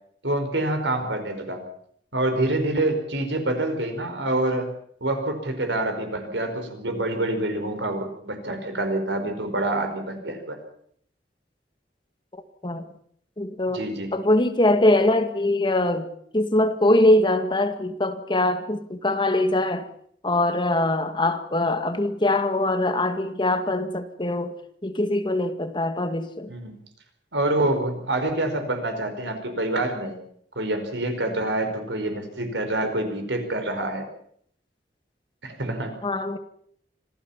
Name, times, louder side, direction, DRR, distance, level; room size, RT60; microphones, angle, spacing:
voice 1, 0.2-1.6 2.1-4.7 5.0-10.6 13.7-14.1 26.5-26.7 27.3-30.2 30.5-34.0 35.4-36.0, right 1 dB, 85° right, 7 dB, 5.0 m, -26 dB
voice 2, 13.4-13.9 14.1-16.1 16.3-19.9 20.2-24.6 24.8-26.5 36.0-36.4, left 1 dB, 30° left, 8 dB, 1.9 m, -22 dB
26.0 x 16.0 x 7.3 m, 0.66 s
head